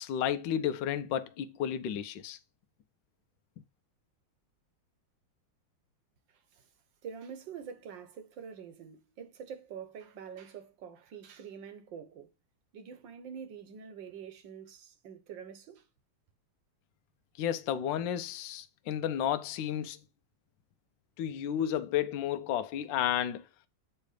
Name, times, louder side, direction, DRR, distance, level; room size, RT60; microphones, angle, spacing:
voice 1, 0.0-2.4 17.4-20.0 21.2-23.4, left 10 dB, 70° left, 1.3 m, -32 dB
voice 2, 6.3-6.7 7.0-12.3 12.7-15.9, right 7 dB, 65° right, 1.7 m, -46 dB
8.4 x 3.3 x 4.9 m
omnidirectional pair, 2.2 m